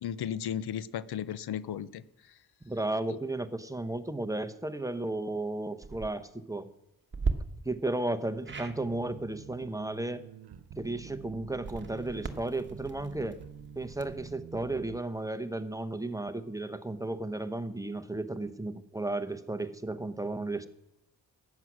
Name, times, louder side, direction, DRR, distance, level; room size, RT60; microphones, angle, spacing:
voice 1, 0.0-2.0 3.1-3.2, left 9 dB, 80° left, 16 dB, 0.7 m, -35 dB
voice 2, 2.7-6.7 7.6-10.2 10.8-13.4 13.8-20.7, right 2 dB, 10° right, 10 dB, 0.8 m, -34 dB
sound 1, 5.7-6.1 7.1-7.3 8.4-8.8 11.5-14.3, right 4 dB, 30° right, 1.3 m, -37 dB
sound 2, 8.5-15.0, right 8 dB, 90° right, 1.0 m, -48 dB
14.5 x 9.4 x 6.2 m, 0.87 s
wide cardioid pair, 105°, 38 cm